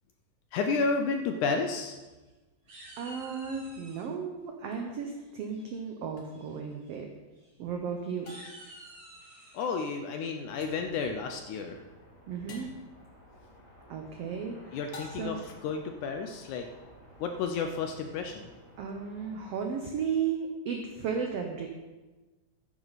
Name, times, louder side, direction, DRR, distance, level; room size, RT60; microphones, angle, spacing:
voice 1, 0.5-2.0 9.5-11.8 14.7-16.7 17.2-18.5, left 4 dB, 75° left, 5 dB, 1.9 m, -31 dB
sound 1, 1.9-2.3 2.7-4.1 5.5-5.9 6.3-6.6 6.8-7.0 7.3-7.5 8.1-9.7, right 1 dB, 55° right, 3.8 m, -50 dB
voice 2, 3.0-7.1 7.6-8.3 12.3-12.7 13.9-14.8 15.1-15.4 18.8-21.7, right 6 dB, 75° right, 3 dB, 1.4 m, -34 dB
sound 2, 6.2-6.3 8.3-8.8 10.6-11.0 12.5-12.9 14.9-15.6, left 3 dB, 50° left, 1.8 m, -48 dB
sound 3, 10.4-19.7, equal, 15° left, 1.5 m, -55 dB
13.0 x 9.2 x 4.0 m, 1.2 s
omnidirectional pair, 3.9 m